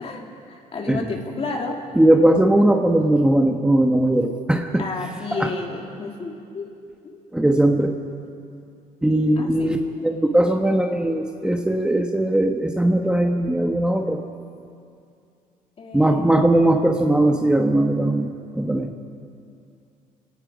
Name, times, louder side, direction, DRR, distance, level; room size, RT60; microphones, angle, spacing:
voice 1, 0.0-1.8 4.8-6.7 7.0-7.2 9.4-10.0 15.8-16.7, left 3 dB, 40° left, 1 dB, 2.9 m, -32 dB
voice 2, 2.0-4.9 5.3-5.5 7.3-7.9 9.0-9.8 10.0-14.2 15.9-18.9, right 1 dB, 5° right, 3 dB, 1.1 m, -19 dB
28.5 x 17.5 x 5.1 m, 2.5 s
cardioid pair, 110°, 15 cm